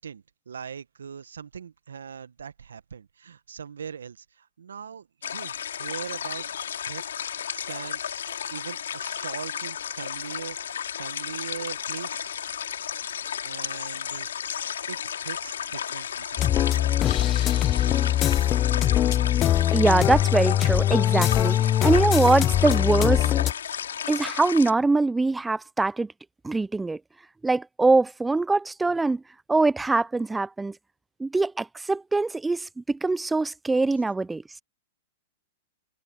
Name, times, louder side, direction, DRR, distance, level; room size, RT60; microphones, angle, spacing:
voice 1, 0.0-6.5 6.8-7.0 7.5-12.3 13.4-14.3 14.9-16.7, right 7 dB, 80° right, 1.5 m, -41 dB
sound 1, 5.2-24.7, left 8 dB, 75° left, 3.1 m, -33 dB
sound 2, 16.4-23.5, left 12 dB, 30° left, 0.6 m, -22 dB
voice 2, 19.7-23.3 24.1-26.1 26.4-27.0 27.4-29.2 29.5-30.7 31.2-34.4, right 3 dB, 10° right, 0.7 m, -23 dB
hypercardioid pair, 110°, 0 cm